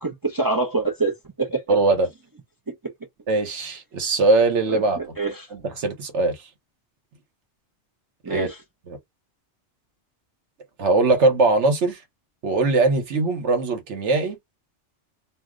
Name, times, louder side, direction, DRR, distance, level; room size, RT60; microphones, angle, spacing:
voice 1, 0.0-1.1 1.4-1.6 2.7-2.9 4.7-5.5 8.2-8.5, right 3 dB, 35° right, 0.3 m, -25 dB
voice 2, 1.7-2.1 3.3-5.0 5.5-6.5 8.3-8.5 8.9-9.0 10.8-12.0 12.4-14.4, right 3 dB, 80° right, 1.2 m, -21 dB
2.6 x 2.0 x 3.6 m
omnidirectional pair, 1.2 m